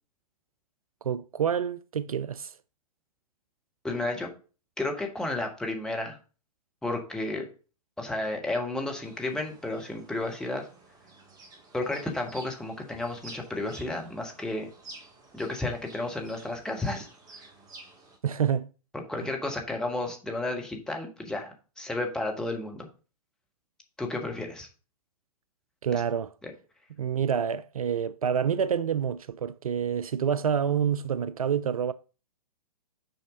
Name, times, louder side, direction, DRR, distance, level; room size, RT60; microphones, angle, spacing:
voice 1, 1.0-2.5 18.2-18.7 25.8-26.3 27.0-31.9, right 8 dB, 65° right, 0.4 m, -27 dB
voice 2, 3.8-4.3 4.8-6.2 6.8-7.5 8.0-10.7 11.7-14.7 15.3-17.1 18.9-22.9 24.0-24.7 25.9-26.0 26.4-26.5, left 2 dB, 5° left, 1.4 m, -32 dB
sound 1, 9.0-18.2, right 2 dB, 20° right, 1.9 m, -51 dB
6.4 x 5.2 x 5.2 m
figure-of-eight pair, 115°, 20 cm